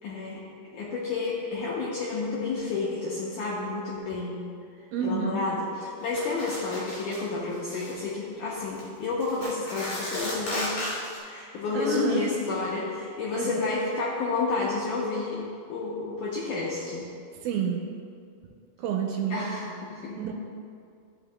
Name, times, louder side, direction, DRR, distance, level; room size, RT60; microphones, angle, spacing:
voice 1, 0.0-0.4 0.7-4.4 5.0-10.9 11.3-15.4 15.7-17.1 19.3-20.2, left 3 dB, 75° left, -6 dB, 1.9 m, -30 dB
voice 2, 4.9-5.3 11.7-12.2 13.4-13.7 17.4-17.8 18.8-19.4 20.2-20.3, right 6 dB, 80° right, 1 dB, 2.4 m, -29 dB
sound 1, 6.1-7.2 7.5-8.0 8.6-8.8 9.2-11.2, left 1 dB, 55° left, 3.4 m, -35 dB
13.5 x 5.7 x 2.3 m, 2.4 s
omnidirectional pair, 4.6 m